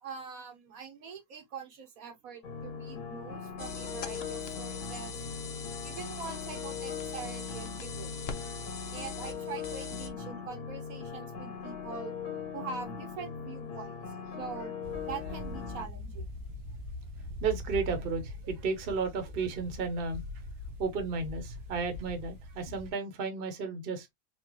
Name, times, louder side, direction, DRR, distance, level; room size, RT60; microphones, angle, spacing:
voice 1, 0.0-5.2 5.8-8.1 8.9-12.1 12.5-14.0 14.3-14.7 15.0-16.3, right 6 dB, 70° right, 1.2 m, -43 dB
sound 1, 2.4-15.8, left 6 dB, 75° left, 1.9 m, -40 dB
sound 2, 3.6-10.1, left 4 dB, 55° left, 0.7 m, -42 dB
sound 3, 14.8-22.9, left 2 dB, 85° right, 1.4 m, -42 dB
voice 2, 17.4-20.2 20.8-24.1, right 4 dB, 45° right, 0.9 m, -33 dB
4.4 x 2.4 x 2.9 m
omnidirectional pair, 1.6 m